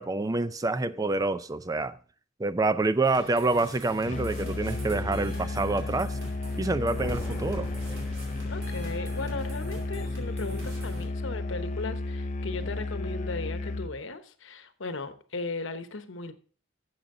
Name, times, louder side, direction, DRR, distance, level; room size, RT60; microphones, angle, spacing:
voice 1, 0.0-2.0 2.4-6.2 6.6-7.7, right 3 dB, 20° right, 0.4 m, -27 dB
sound 1, 3.0-11.0, right 1 dB, 85° right, 3.5 m, -43 dB
Musical instrument, 4.0-14.0, left 2 dB, 35° left, 0.5 m, -33 dB
sound 2, 6.9-9.1, left 1 dB, 15° left, 1.7 m, -42 dB
voice 2, 8.4-16.3, left 3 dB, 70° left, 1.0 m, -37 dB
12.0 x 7.4 x 3.7 m
head